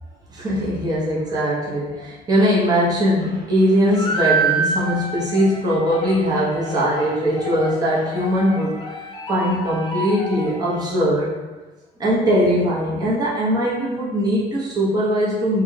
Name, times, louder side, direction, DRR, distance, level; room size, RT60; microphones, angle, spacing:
voice 1, 0.3-8.8 9.3-11.3 12.0-15.6, equal, 25° right, -7 dB, 0.9 m, -20 dB
sound 1, 3.9-11.0, right 3 dB, 30° left, 0.5 m, -28 dB
3.4 x 2.3 x 3.2 m, 1.2 s
cardioid pair, 110°, 17 cm